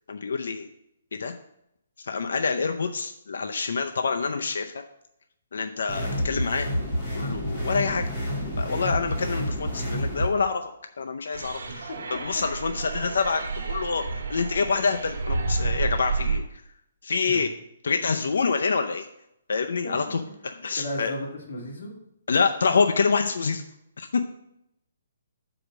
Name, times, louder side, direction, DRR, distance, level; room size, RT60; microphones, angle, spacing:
voice 1, 0.1-0.7 1.2-1.3 2.0-4.7 5.5-6.7 7.1-8.0 8.6-10.7 11.0-14.0 14.3-16.4 17.0-17.5 17.8-19.1 19.5-20.2 20.6-21.1 22.3-23.6 24.0-24.2, left 5 dB, 70° left, 5 dB, 0.5 m, -26 dB
sound 1, 5.9-10.3, equal, 10° left, 1.8 m, -29 dB
sound 2, 11.3-16.4, right 4 dB, 75° right, 1.4 m, -30 dB
voice 2, 11.7-12.4 17.3-17.5 19.8-20.0 20.8-21.9, left 1 dB, 55° left, -1 dB, 2.1 m, -35 dB
6.1 x 5.0 x 6.3 m, 0.79 s
hypercardioid pair, 180°, 0 cm